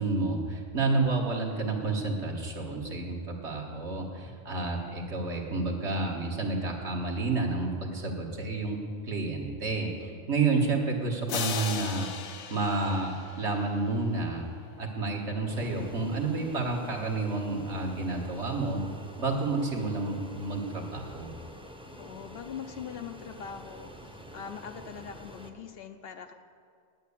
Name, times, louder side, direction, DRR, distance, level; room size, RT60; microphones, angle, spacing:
voice 1, 0.0-12.1 12.5-14.5 14.8-18.8 19.2-21.3, right 3 dB, 70° right, 0 dB, 1.8 m, -30 dB
sound 1, 11.3-14.0, left 6 dB, 75° left, 1.1 m, -36 dB
Fixed-wing aircraft airplane, 15.5-25.5, equal, 5° right, 0.7 m, -47 dB
voice 2, 22.0-26.3, left 7 dB, 60° left, 7 dB, 0.8 m, -42 dB
9.6 x 9.1 x 8.4 m, 2.2 s
omnidirectional pair, 1.2 m